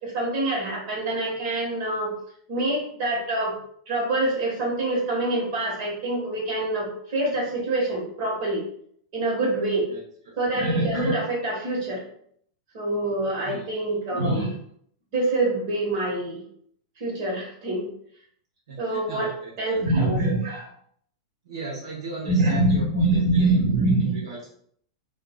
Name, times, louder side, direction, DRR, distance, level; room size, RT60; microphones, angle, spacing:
voice 1, 0.0-2.1 2.5-3.5 3.9-8.6 9.1-9.9 10.4-12.0 12.7-14.5 15.1-16.4 17.0-17.9 18.8-19.3 19.6-20.7 22.3-24.2, right 2 dB, 50° right, -2 dB, 1.5 m, -25 dB
voice 2, 18.7-19.8 21.4-24.5, right 3 dB, 80° right, -3 dB, 1.1 m, -37 dB
3.8 x 2.7 x 2.3 m, 0.65 s
supercardioid pair, 150°, 3 cm